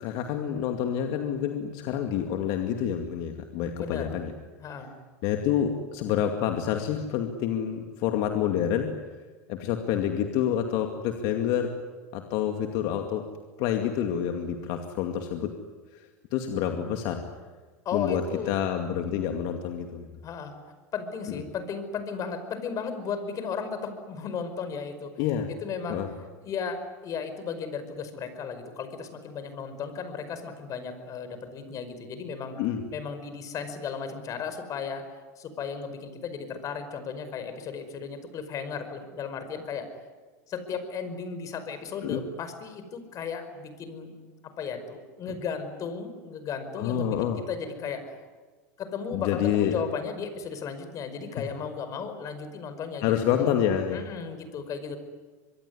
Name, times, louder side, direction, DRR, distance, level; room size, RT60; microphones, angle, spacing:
voice 1, 0.0-4.3 5.2-9.0 9.5-11.8 12.1-13.3 13.6-15.6 15.9-17.3 17.9-20.1 21.3-21.4 25.2-25.5 25.9-26.1 32.6-32.9 42.0-42.2 46.8-47.4 49.1-49.8 51.4-51.5 53.0-54.0, left 9 dB, 60° left, 5 dB, 2.3 m, -28 dB
voice 2, 3.8-4.1 4.6-4.9 17.9-18.6 20.2-20.5 20.9-25.1 25.5-26.0 26.4-32.6 32.9-35.1 35.4-39.9 40.5-44.1 44.4-48.2 48.8-53.1 53.4-53.5 53.9-55.0, left 6 dB, 40° left, 10 dB, 5.2 m, -35 dB
25.0 x 22.5 x 9.8 m, 1.4 s
hypercardioid pair, 95°, 8 cm